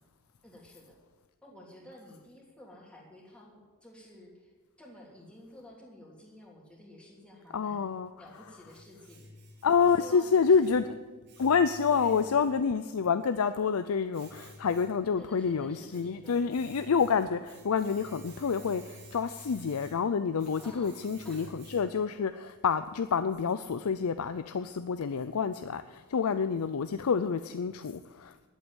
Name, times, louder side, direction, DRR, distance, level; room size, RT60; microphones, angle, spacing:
voice 1, 0.4-1.0 1.4-4.5 4.8-9.3 9.7-10.8 11.9-12.3 15.2-16.4 20.6-21.5, left 1 dB, 5° left, -2 dB, 2.9 m, -51 dB
voice 2, 7.5-8.1 9.6-10.8 11.4-28.5, left 6 dB, 90° left, 12 dB, 0.5 m, -28 dB
Domestic sounds home sounds, 7.8-22.2, equal, 55° right, 2.6 m, -54 dB
11.5 x 8.3 x 8.9 m, 1.3 s
head